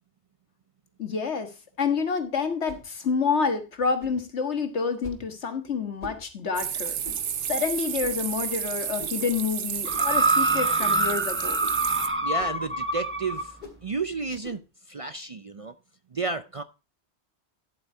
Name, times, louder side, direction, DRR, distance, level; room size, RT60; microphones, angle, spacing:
voice 1, 1.0-1.5 1.8-7.0 7.5-11.6, left 5 dB, 80° left, 7 dB, 1.8 m, -28 dB
sound 1, 2.6-2.9 4.0-4.2 5.0-5.3 6.0-6.2 7.0-7.3 8.0-8.3 9.0-9.2 9.9-10.1 10.8-11.0 11.6-11.8 12.4-12.6 13.6-13.8 14.4-14.6, left 1 dB, 45° left, 2.7 m, -43 dB
sound 2, 6.5-12.1, right 8 dB, 90° right, 1.2 m, -31 dB
sound 3, 9.9-13.5 14.3-14.4, right 2 dB, 10° right, 0.8 m, -25 dB
voice 2, 12.2-13.6 13.8-15.7 16.1-16.6, right 4 dB, 45° right, 11 dB, 0.5 m, -32 dB
11.0 x 8.0 x 4.5 m, 0.31 s
omnidirectional pair, 1.1 m